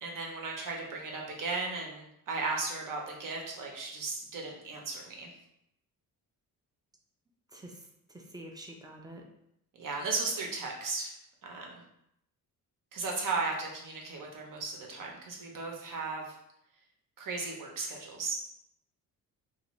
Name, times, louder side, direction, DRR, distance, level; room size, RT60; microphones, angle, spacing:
voice 1, 0.0-5.3 9.8-11.1 11.4-11.8 12.9-16.2 17.2-18.3, right 3 dB, 60° right, 0 dB, 0.8 m, -36 dB
voice 2, 7.5-9.2, right 1 dB, 10° right, 1 dB, 0.4 m, -47 dB
2.5 x 2.5 x 3.0 m, 0.78 s
cardioid pair, 105°, 36 cm